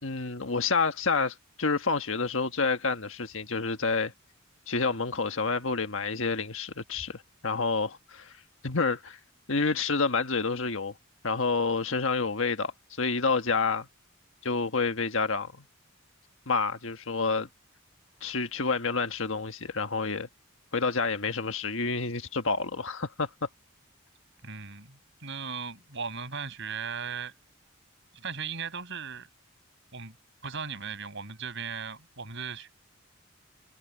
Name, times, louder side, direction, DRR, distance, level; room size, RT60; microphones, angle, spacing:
voice 1, 0.0-4.1 4.7-8.3 8.6-9.2 9.5-10.9 11.2-12.7 13.0-13.9 14.4-15.6 16.5-17.5 18.2-20.3 20.7-23.3, left 4 dB, 65° left, 1.5 m, -28 dB
voice 2, 24.4-27.3 28.2-29.3 29.9-30.1 30.4-32.7, right 5 dB, 60° right, 6.2 m, -37 dB
head